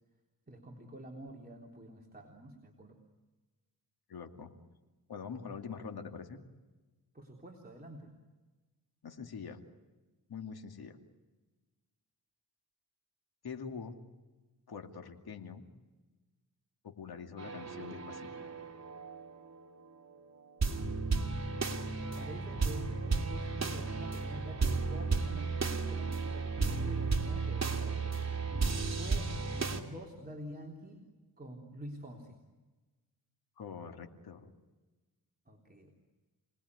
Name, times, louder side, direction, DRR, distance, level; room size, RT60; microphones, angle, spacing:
voice 1, 0.5-3.0 7.1-8.1 21.9-28.2 29.0-31.1 31.4-32.4 35.5-35.9, right 1 dB, 25° right, -1 dB, 3.6 m, -48 dB
voice 2, 4.1-4.5 5.1-6.4 9.0-9.6 10.3-11.0 13.4-14.0 14.7-15.7 16.8-18.3 33.6-34.5, left 6 dB, 75° left, 4 dB, 2.6 m, -44 dB
sound 1, 17.4-20.2 20.5-29.8, right 4 dB, 45° right, 2.9 m, -34 dB
28.5 x 20.0 x 9.7 m, 1.2 s
cardioid pair, 80°, 38 cm